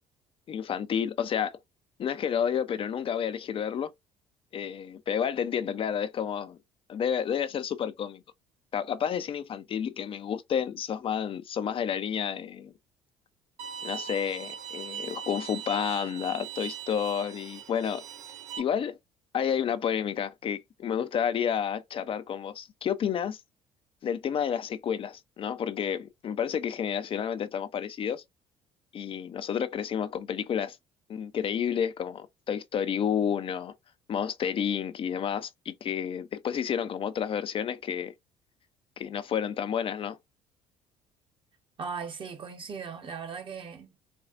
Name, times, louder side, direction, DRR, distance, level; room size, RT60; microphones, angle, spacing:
voice 1, 0.5-1.6 2.0-3.9 4.5-6.6 6.9-8.2 8.7-12.7 13.8-18.0 18.6-19.0 19.3-23.4 24.0-28.2 28.9-30.8 31.1-33.7 34.1-38.1 39.0-40.2, left 8 dB, 45° left, 0.5 m, -30 dB
Bowed string instrument, 13.6-18.6, right 8 dB, 75° right, 1.2 m, -40 dB
voice 2, 41.8-44.0, right 5 dB, 40° right, 1.1 m, -38 dB
4.3 x 2.4 x 2.4 m
hypercardioid pair, 60°, 13 cm